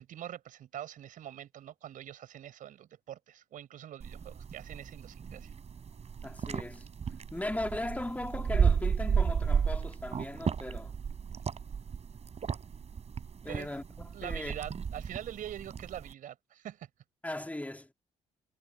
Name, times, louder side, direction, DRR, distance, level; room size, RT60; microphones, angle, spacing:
voice 1, 0.0-5.5 13.5-13.7 14.1-16.9, right 11 dB, 65° right, 4.9 m, -44 dB
sound 1, 4.0-16.1, right 6 dB, 45° right, 4.4 m, -33 dB
voice 2, 6.2-6.9 7.3-11.0 13.4-14.6 17.2-17.9, left 1 dB, 10° left, 2.9 m, -38 dB
hypercardioid pair, 50°, 15 cm